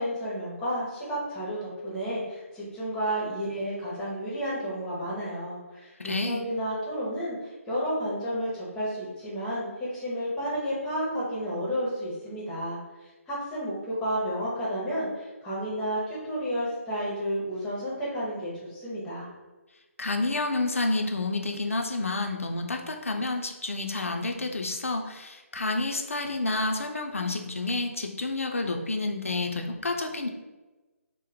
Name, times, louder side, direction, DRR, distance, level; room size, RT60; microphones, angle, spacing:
voice 1, 0.0-12.8 13.3-19.3, equal, 10° left, -7 dB, 0.7 m, -31 dB
voice 2, 6.0-6.4 20.0-30.3, left 2 dB, 65° left, 3 dB, 0.5 m, -29 dB
3.0 x 2.1 x 4.0 m, 1.2 s
figure-of-eight pair, 145°, 8 cm